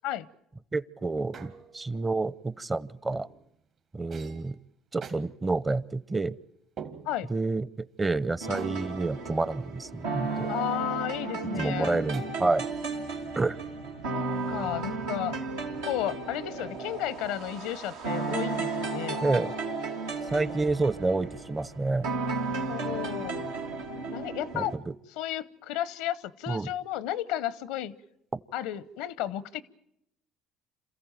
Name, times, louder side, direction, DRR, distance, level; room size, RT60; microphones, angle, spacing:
voice 1, 0.7-3.3 3.9-4.6 4.9-6.3 7.3-10.5 11.5-12.7 13.4-13.6 19.2-19.5 20.3-22.1 24.5-24.6 26.5-26.7, right 3 dB, 25° right, 19 dB, 0.8 m, -29 dB
sound 1, 1.3-1.9 3.1-3.4 4.1-4.5 5.0-5.2 6.8-7.4 8.5-9.9 10.4-10.9 12.1-12.7, right 6 dB, 60° right, 2.3 m, -44 dB
sound 2, 8.4-24.8, right 3 dB, 90° right, 2.0 m, -34 dB
voice 2, 10.5-12.0 14.1-15.3 15.9-19.2 22.7-23.5 24.1-24.7 25.2-28.0 28.5-29.6, left 12 dB, 80° left, 19 dB, 0.8 m, -33 dB
27.0 x 14.5 x 9.1 m, 0.83 s
hypercardioid pair, 65°, 0 cm